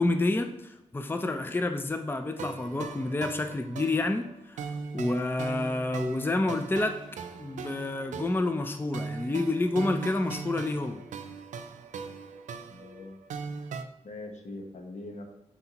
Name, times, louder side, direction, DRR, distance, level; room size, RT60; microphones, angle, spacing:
voice 1, 0.0-4.6 4.9-7.0 7.4-11.0, left 2 dB, 15° left, 7 dB, 0.5 m, -29 dB
sound 1, 2.4-13.8, right 5 dB, 80° right, 0.5 m, -40 dB
voice 2, 12.7-13.2 14.0-15.2, left 2 dB, 70° left, 3 dB, 1.1 m, -42 dB
8.0 x 4.5 x 2.9 m, 0.86 s
cardioid pair, 55°, 12 cm